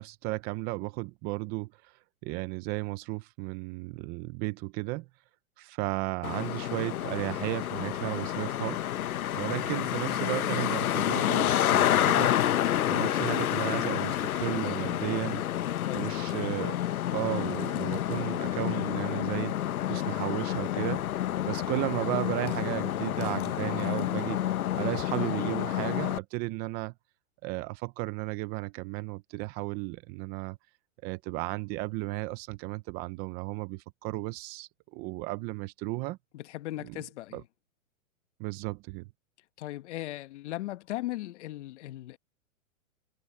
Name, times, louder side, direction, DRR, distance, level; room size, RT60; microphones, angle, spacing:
voice 1, 0.0-5.1 5.6-8.8 9.3-15.4 15.9-16.8 17.1-19.5 19.9-21.0 21.5-26.9 27.4-30.6 31.0-36.2 36.8-37.0 37.3-37.4 38.4-39.1, right 21 dB, 25° right, 0.6 m, -34 dB
Traffic noise roadway noise, 6.2-26.2, left 12 dB, 85° left, 1.1 m, -29 dB
voice 2, 15.8-16.3 36.3-37.4 39.6-42.2, left 16 dB, 55° left, 1.4 m, -38 dB
hypercardioid pair, 150°, 42 cm